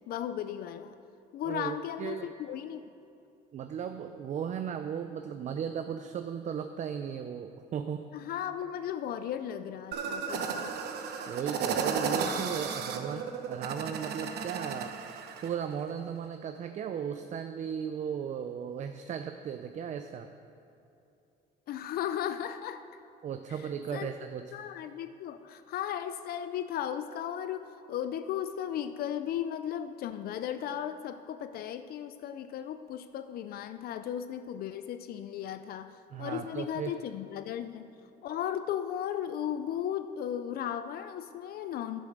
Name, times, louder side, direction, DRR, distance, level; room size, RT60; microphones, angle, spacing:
voice 1, 0.1-1.0 1.3-2.8 8.1-10.7 21.7-22.8 23.5-23.6 23.9-24.1 24.5-37.9 38.2-42.0, left 10 dB, 65° left, 10 dB, 0.5 m, -36 dB
voice 2, 1.5-2.3 3.5-8.1 11.3-14.9 15.4-20.3 23.2-24.4 36.1-36.9, right 8 dB, 45° right, 7 dB, 0.5 m, -36 dB
sound 1, 9.9-15.5, right 6 dB, 75° right, 0.9 m, -34 dB
9.7 x 7.8 x 6.5 m, 2.7 s
cardioid pair, 110°, 17 cm